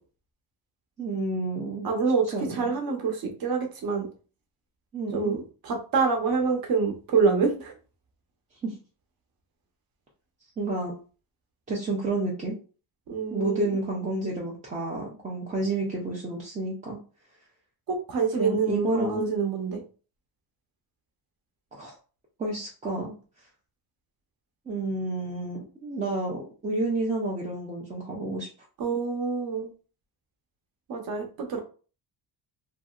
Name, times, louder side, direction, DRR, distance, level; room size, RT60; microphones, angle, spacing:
voice 1, 1.0-1.9 2.3-2.7 4.9-5.4 8.6-8.8 10.6-10.9 11.7-12.6 13.3-17.0 18.4-19.3 21.7-22.0 22.4-23.5 24.7-28.5, right 2 dB, 20° right, -3 dB, 0.3 m, -30 dB
voice 2, 1.8-2.2 2.5-4.1 5.1-7.7 13.1-13.8 17.9-19.8 28.8-29.7 30.9-31.6, right 5 dB, 50° right, 3 dB, 0.8 m, -26 dB
2.9 x 2.6 x 2.3 m, 0.37 s
cardioid pair, 165°, 47 cm